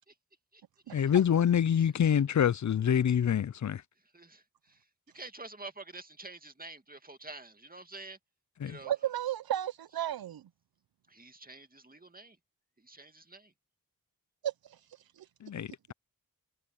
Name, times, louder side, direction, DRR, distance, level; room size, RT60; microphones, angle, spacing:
voice 1, 0.9-3.8 8.6-8.8 15.4-15.9, left 8 dB, 55° left, 0.6 m, -26 dB
voice 2, 1.8-2.1 4.0-4.9 5.1-8.2 8.6-8.9 11.1-12.4 12.8-13.5, right 2 dB, 25° right, 2.2 m, -48 dB
voice 3, 8.8-10.4 14.4-15.3, right 11 dB, 90° right, 0.6 m, -34 dB
cardioid pair, 40°, 36 cm